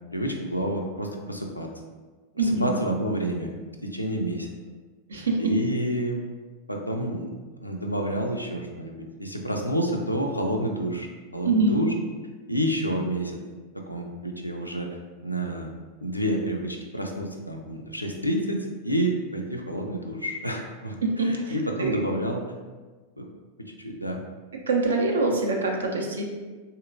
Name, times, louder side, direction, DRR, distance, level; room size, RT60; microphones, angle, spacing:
voice 1, 0.1-1.7 2.4-3.5 3.8-4.5 5.2-6.2 6.7-11.9 12.5-13.4 13.7-14.9 15.2-15.7 16.0-22.4 23.2-23.3 23.6-24.2, equal, 85° left, 2 dB, 0.4 m, -29 dB
voice 2, 2.4-2.7 5.1-5.5 11.4-11.8 21.0-21.5 21.8-22.0 24.7-26.2, right 3 dB, 70° right, 1 dB, 0.5 m, -24 dB
3.3 x 2.8 x 2.5 m, 1.3 s
figure-of-eight pair, 90°, 0 cm